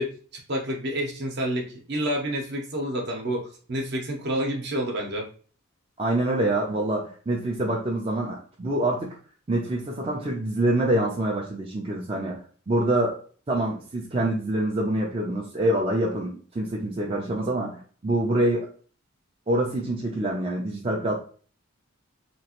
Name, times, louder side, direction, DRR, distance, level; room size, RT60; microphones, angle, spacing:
voice 1, 0.0-5.3, equal, 55° right, 1 dB, 0.8 m, -29 dB
voice 2, 6.0-9.1 9.5-12.4 12.7-13.2 13.5-18.7 19.5-21.2, right 1 dB, 25° right, -2 dB, 0.5 m, -26 dB
3.0 x 2.4 x 2.9 m, 0.41 s
head